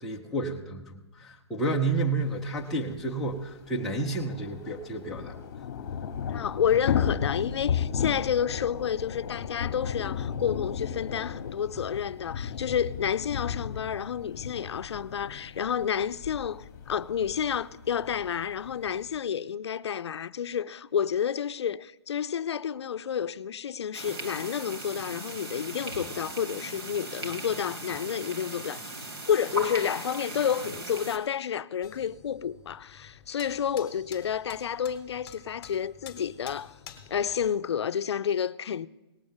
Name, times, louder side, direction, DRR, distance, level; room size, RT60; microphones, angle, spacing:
voice 1, 0.0-5.4, right 2 dB, ahead, 0.4 m, -30 dB
Thunder / Rain, 2.6-2.7 2.9-3.0 3.3-19.2, left 8 dB, 40° left, 1.0 m, -35 dB
voice 2, 6.3-29.0 29.3-36.8 37.1-38.9, left 8 dB, 75° left, 0.5 m, -30 dB
sound 1, 23.9-31.2, right 1 dB, 55° right, 2.1 m, -38 dB
sound 2, 31.8-37.5, left 8 dB, 20° left, 1.0 m, -50 dB
18.0 x 6.5 x 7.2 m
hypercardioid pair, 170°, 14 cm